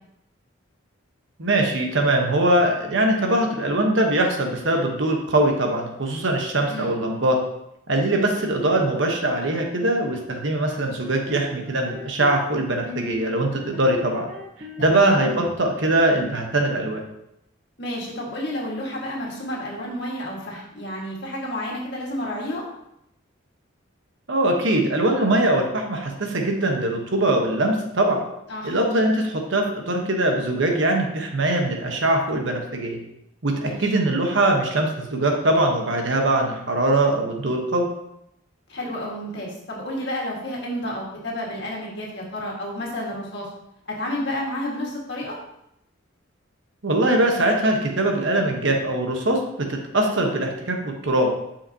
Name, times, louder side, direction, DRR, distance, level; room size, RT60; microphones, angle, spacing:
voice 1, 1.4-7.4 7.9-14.3 14.8-17.0 24.3-28.2 28.6-33.0 33.4-37.9 46.8-51.3, right 1 dB, 65° right, 2 dB, 1.1 m, -22 dB
sound 1, 11.0-12.5 12.9-13.2 13.5-14.9 15.2-16.2, left 1 dB, 35° right, 1.0 m, -38 dB
voice 2, 14.8-15.2 17.8-22.6 28.5-28.8 33.6-33.8 38.7-43.5 44.0-45.3, left 1 dB, 55° left, -3 dB, 1.8 m, -30 dB
8.0 x 5.8 x 2.8 m, 0.81 s
head